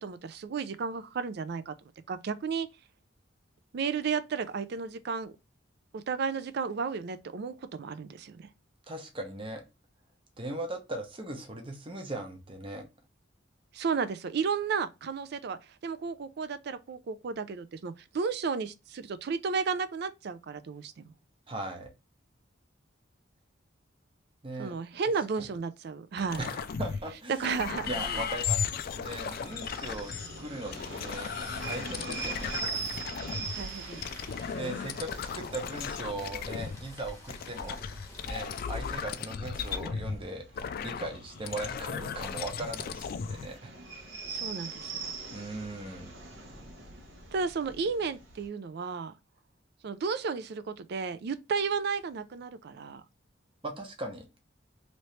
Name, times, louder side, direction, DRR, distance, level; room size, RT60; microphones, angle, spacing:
voice 1, 0.0-1.7 2.1-2.7 3.7-5.3 5.9-8.5 13.7-21.1 24.6-26.4 27.4-28.2 33.5-34.0 44.3-44.9 47.3-49.1 49.8-53.0, right 5 dB, 55° right, 0.4 m, -33 dB
voice 2, 8.9-9.6 10.4-12.8 21.5-21.9 24.4-24.7 25.4-25.5 26.4-27.5 27.9-30.1 30.4-31.3 31.6-32.5 34.5-37.8 38.2-43.8 45.3-46.2 53.6-54.3, right 2 dB, 30° right, 0.8 m, -39 dB
sound 1, 26.2-27.1 27.4-33.5 34.0-36.9 37.3-43.5, left 6 dB, 50° left, 0.3 m, -36 dB
sound 2, 29.2-48.5, right 4 dB, 75° right, 1.0 m, -43 dB
Rain, 33.4-39.0, left 1 dB, 15° left, 0.9 m, -48 dB
3.0 x 2.8 x 3.1 m
head